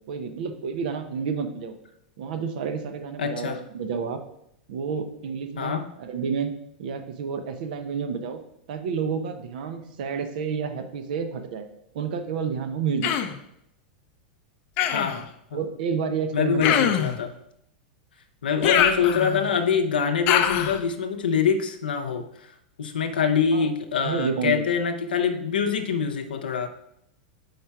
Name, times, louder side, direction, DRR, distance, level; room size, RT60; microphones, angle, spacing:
voice 1, 0.1-1.8 2.2-4.2 4.7-8.4 8.7-11.7 11.9-13.1 15.5-16.9 23.5-23.7 24.0-24.6, right 6 dB, 65° right, 8 dB, 0.7 m, -30 dB
voice 2, 3.2-3.6 5.6-5.9 14.9-15.6 16.3-17.3 18.4-22.5 22.8-26.7, left 6 dB, 90° left, 5 dB, 0.6 m, -25 dB
Human voice, 13.0-13.4 14.8-15.2 16.6-17.2 18.6-19.5 20.3-20.8, left 10 dB, 45° left, 0.5 m, -23 dB
4.9 x 4.4 x 4.6 m, 0.75 s
hypercardioid pair, 110°, 5 cm